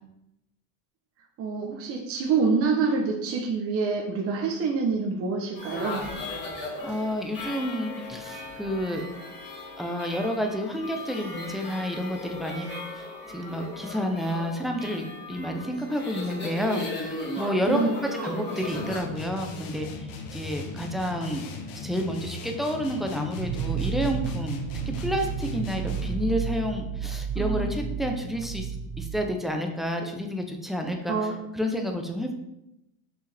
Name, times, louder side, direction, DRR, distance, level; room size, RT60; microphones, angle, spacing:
voice 1, 1.4-6.0 17.7-17.9 27.4-27.7 31.1-31.3, right 4 dB, 35° right, 1 dB, 0.9 m, -26 dB
sound 1, 5.5-19.0, left 2 dB, 25° left, 2.6 m, -37 dB
voice 2, 6.8-9.0 9.8-12.7 13.0-19.9 20.3-21.4 21.7-24.6 25.0-28.7 29.0-32.3, equal, ahead, 3 dB, 0.6 m, -30 dB
sound 2, 18.7-26.3, left 3 dB, 55° left, 1.2 m, -38 dB
sound 3, 23.4-29.2, right 7 dB, 90° right, 0.7 m, -31 dB
6.1 x 5.5 x 3.4 m, 0.86 s
cardioid pair, 145°, 40 cm